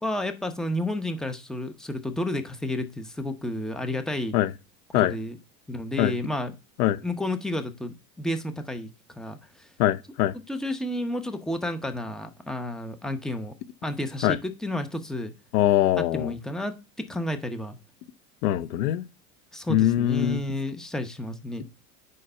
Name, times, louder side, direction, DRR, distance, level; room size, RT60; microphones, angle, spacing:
voice 1, 0.0-4.4 4.9-5.4 5.7-6.5 7.0-9.7 10.5-13.5 13.8-15.3 16.0-17.8 19.5-21.7, left 1 dB, ahead, 0.8 m, -31 dB
voice 2, 9.8-10.3 14.2-14.4 15.5-16.3 18.4-19.0 19.7-20.4, left 13 dB, 75° left, 0.7 m, -22 dB
6.5 x 5.4 x 5.5 m
hypercardioid pair, 110°, 46 cm